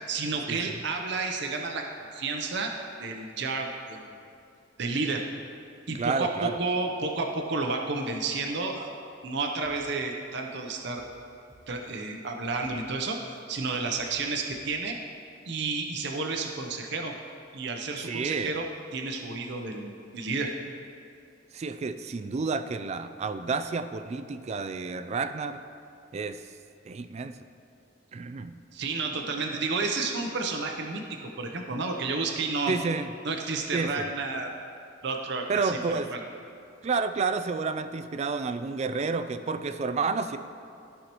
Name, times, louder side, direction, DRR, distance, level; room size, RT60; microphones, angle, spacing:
voice 1, 0.1-1.8 2.1-2.7 3.0-4.1 4.8-5.2 5.9-8.9 9.2-11.1 11.7-13.2 13.5-15.0 15.5-17.1 17.5-18.6 18.9-20.5 28.7-32.7 33.2-34.5 35.0-36.2, right 3 dB, 65° right, 2 dB, 0.7 m, -31 dB
voice 2, 5.9-6.6 18.0-18.6 21.5-25.6 26.1-26.4 26.8-27.4 28.1-28.6 32.7-33.1 33.7-34.1 35.5-36.1 36.8-40.4, right 4 dB, 35° right, 10 dB, 0.3 m, -30 dB
sound 1, 9.6-9.8 10.2-10.4 10.7-11.9 12.2-12.3 12.6-12.8 13.2-13.4 13.7-14.1 14.5-14.6, right 1 dB, 15° right, 1.0 m, -57 dB
14.5 x 5.6 x 3.0 m, 2.5 s
head